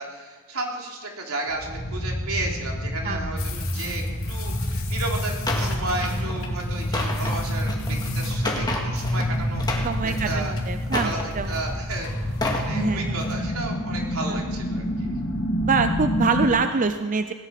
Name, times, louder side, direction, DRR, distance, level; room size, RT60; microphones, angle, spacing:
voice 1, 0.0-10.6 11.0-12.1 12.5-15.1, right 2 dB, 80° right, 0 dB, 3.3 m, -33 dB
sound 1, 1.5-16.5, equal, 85° left, 2.7 m, -28 dB
sound 2, 3.4-12.9, left 5 dB, 65° left, 3.4 m, -42 dB
sound 3, 5.5-5.8 6.1-6.4 6.8-9.3 9.6-10.4 10.9-11.7 12.2-12.7 13.1-13.3, left 2 dB, 20° left, 2.1 m, -30 dB
voice 2, 9.8-11.5 12.7-13.2 14.3-14.4 15.6-17.3, right 4 dB, 35° right, 9 dB, 0.5 m, -25 dB
17.5 x 12.0 x 5.9 m, 1.5 s
head